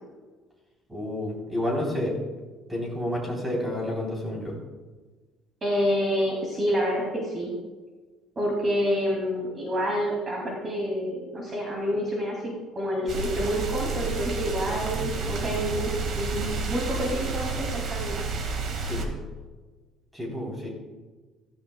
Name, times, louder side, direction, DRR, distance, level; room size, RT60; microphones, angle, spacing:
voice 1, 0.9-2.2 2.7-4.5 18.8-19.1 20.1-20.7, left 1 dB, 10° right, -2 dB, 3.5 m, -30 dB
voice 2, 5.6-7.5 8.4-15.9 16.1-18.2, equal, 25° right, -2 dB, 2.6 m, -28 dB
sound 1, 13.1-19.1, right 4 dB, 45° right, 1.9 m, -30 dB
15.5 x 15.0 x 2.3 m, 1.3 s
cardioid pair, 150°, 0 cm